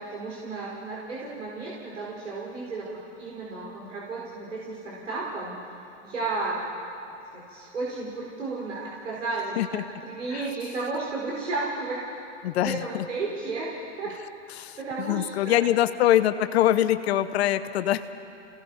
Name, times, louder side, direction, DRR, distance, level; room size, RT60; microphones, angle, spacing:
voice 1, 0.0-5.6 6.0-6.7 7.3-12.0 12.6-13.7 14.0-14.1 14.8-15.6, right 3 dB, 85° right, -5 dB, 4.7 m, -33 dB
voice 2, 12.4-13.0 14.5-18.0, left 12 dB, 60° left, 11 dB, 1.0 m, -24 dB
29.0 x 18.0 x 5.6 m, 2.7 s
hypercardioid pair, 120°, 36 cm